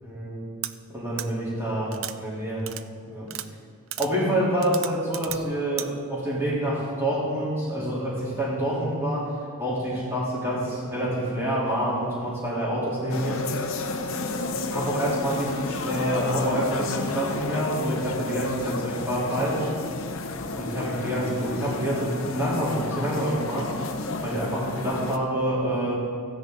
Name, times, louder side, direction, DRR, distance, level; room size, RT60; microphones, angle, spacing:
voice 1, 0.0-0.4 0.9-2.7 3.1-3.3 4.0-13.4 14.7-19.7 20.5-23.7 24.2-25.9, right 1 dB, 10° right, -8 dB, 3.4 m, -27 dB
sound 1, 0.6-0.7 1.2-1.3 1.9-2.1 2.7-2.8 3.3-3.5 3.9-4.1 4.6-5.4 5.8-5.9, right 13 dB, 60° right, 0.4 m, -33 dB
sound 2, 13.1-25.2, left 3 dB, 65° left, 0.7 m, -31 dB
15.0 x 10.0 x 4.0 m, 2.1 s
head